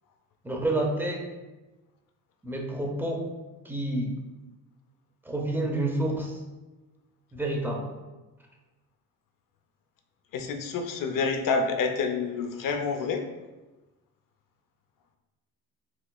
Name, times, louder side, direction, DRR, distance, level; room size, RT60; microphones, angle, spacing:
voice 1, 0.4-1.2 2.4-3.2 3.6-4.1 5.2-6.4 7.3-7.9, right 1 dB, 5° right, 0 dB, 0.7 m, -29 dB
voice 2, 10.3-13.2, left 4 dB, 60° left, 5 dB, 0.6 m, -28 dB
4.8 x 2.8 x 2.3 m, 1.1 s
cardioid pair, 85°, 37 cm